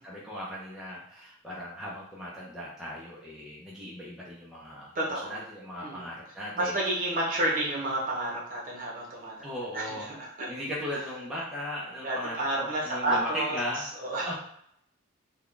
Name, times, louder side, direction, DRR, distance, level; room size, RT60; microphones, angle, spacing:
voice 1, 0.0-6.8 9.4-10.1 10.5-14.3, left 1 dB, ahead, -6 dB, 0.5 m, -37 dB
voice 2, 4.9-5.4 5.8-6.1 6.5-9.3 9.7-10.5 12.0-13.6 14.0-14.3, right 1 dB, 40° right, -3 dB, 1.0 m, -30 dB
3.5 x 2.3 x 3.7 m, 0.71 s
head